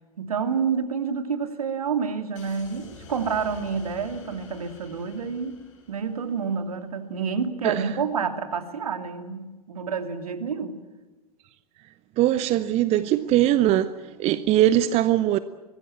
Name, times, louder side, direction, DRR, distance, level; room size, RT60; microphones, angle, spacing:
voice 1, 0.2-5.6 5.9-10.8, right 6 dB, 70° right, 2.6 m, -28 dB
sound 1, 2.3-6.7, left 4 dB, 55° left, 5.9 m, -49 dB
voice 2, 12.2-15.4, right 13 dB, 35° right, 0.9 m, -21 dB
24.0 x 19.5 x 8.8 m
figure-of-eight pair, 95°, 19 cm